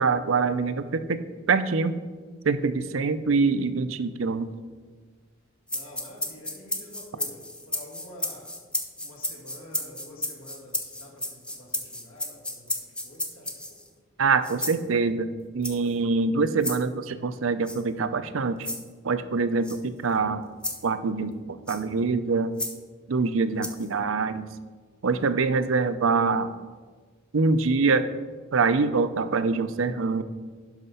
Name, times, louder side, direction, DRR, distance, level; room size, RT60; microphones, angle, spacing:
voice 1, 0.0-2.0 2.4-4.5 14.2-15.3 15.5-18.7 19.0-20.4 20.8-22.5 23.1-24.5 25.0-26.5 27.3-28.1 28.5-30.2, right 4 dB, 75° right, 12 dB, 0.5 m, -24 dB
voice 2, 5.7-8.6 9.0-13.8, left 1 dB, 85° left, -3 dB, 2.7 m, -48 dB
sound 1, 5.7-13.9 14.4-14.8 15.6-15.9 16.6-16.8 17.7-17.8 18.6-18.8 19.6-19.8 20.6-20.8 21.7-21.8 22.6-22.7 23.6-23.9, left 1 dB, 5° left, 0.6 m, -32 dB
10.5 x 5.6 x 5.6 m, 1.4 s
head